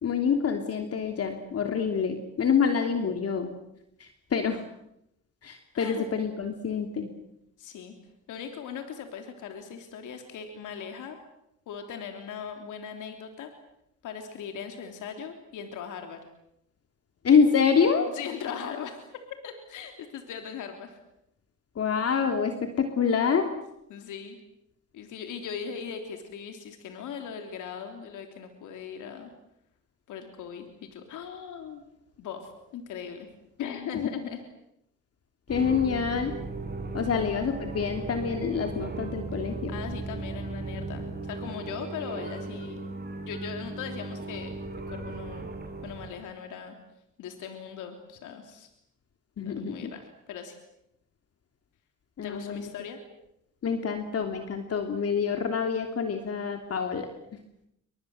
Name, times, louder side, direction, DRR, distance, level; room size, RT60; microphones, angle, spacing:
voice 1, 0.0-3.5 4.0-4.6 5.4-7.1 17.2-18.1 21.8-23.5 35.5-36.3 36.9-39.7 49.4-49.9 52.2-52.7 53.6-57.1, left 6 dB, 50° left, 5 dB, 3.1 m, -26 dB
voice 2, 5.7-6.1 7.6-7.9 8.3-11.2 11.7-13.5 14.0-16.2 18.1-19.0 19.4-21.0 23.9-24.4 24.9-29.3 30.1-31.8 32.2-33.3 33.6-34.4 37.1-37.3 39.4-42.8 43.2-44.6 44.9-45.5 45.8-46.7 47.2-48.7 49.4-50.6 52.2-53.0, left 7 dB, 85° left, 5 dB, 3.6 m, -39 dB
sound 1, 35.5-46.1, right 3 dB, 35° right, 6.3 m, -36 dB
30.0 x 24.5 x 8.0 m, 0.80 s
cardioid pair, 90°, 30 cm